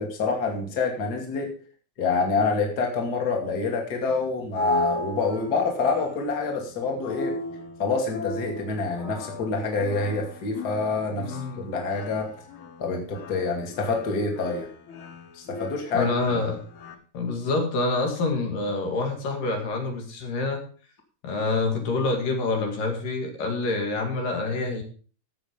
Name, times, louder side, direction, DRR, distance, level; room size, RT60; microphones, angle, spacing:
voice 1, 0.0-1.5 2.0-7.4 7.8-12.3 12.8-14.7 15.3-16.4, left 4 dB, 30° left, 2 dB, 2.5 m, -27 dB
sound 1, 4.1-16.9, left 2 dB, 50° left, 1.6 m, -35 dB
voice 2, 11.2-11.6 15.9-16.6 17.1-20.6 21.2-24.8, left 3 dB, 70° left, 3 dB, 3.9 m, -27 dB
14.0 x 8.0 x 5.2 m, 0.41 s
omnidirectional pair, 4.1 m